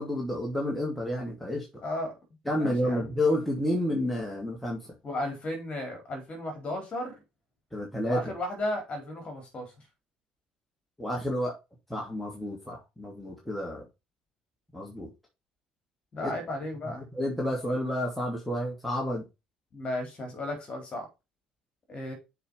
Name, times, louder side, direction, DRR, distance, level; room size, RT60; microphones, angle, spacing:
voice 1, 0.0-1.8 2.5-4.9 7.7-8.3 11.0-11.5 11.9-13.8 14.7-15.1 16.2-16.3 16.8-19.2, left 1 dB, 5° left, -2 dB, 2.6 m, -30 dB
voice 2, 1.8-2.1 2.6-3.1 5.0-7.2 8.1-9.7 16.1-17.1 19.7-21.1 21.9-22.1, left 1 dB, 35° left, 4 dB, 3.9 m, -34 dB
6.6 x 5.0 x 5.2 m, 0.25 s
figure-of-eight pair, 50°, 3 cm